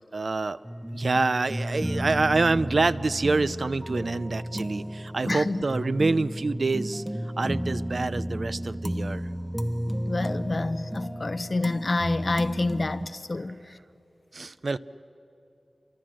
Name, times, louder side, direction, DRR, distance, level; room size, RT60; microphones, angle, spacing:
voice 1, 0.1-0.6 0.9-7.0 7.4-9.3 14.3-14.8, right 3 dB, 60° right, 0.6 m, -26 dB
sound 1, 0.6-13.1, equal, 5° right, 0.8 m, -33 dB
voice 2, 5.3-5.6 10.0-13.6, left 2 dB, 50° left, 0.9 m, -28 dB
28.5 x 24.0 x 7.7 m
wide cardioid pair, 85°, 0 cm